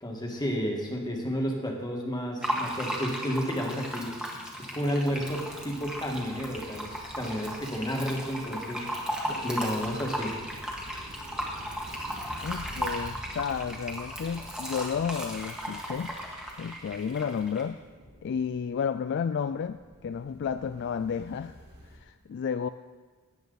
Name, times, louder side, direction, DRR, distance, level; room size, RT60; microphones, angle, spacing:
voice 1, 0.0-4.1 4.6-8.9 9.3-10.3, equal, 20° left, 0 dB, 1.7 m, -31 dB
Fill (with liquid), 2.4-17.6, equal, 5° right, 1.6 m, -36 dB
sound 1, 4.5-22.0, equal, 50° right, 3.0 m, -50 dB
voice 2, 12.4-16.2 16.6-17.8 18.2-21.5 21.9-22.7, left 7 dB, 55° left, 11 dB, 0.3 m, -32 dB
16.0 x 9.5 x 4.0 m, 1.5 s
head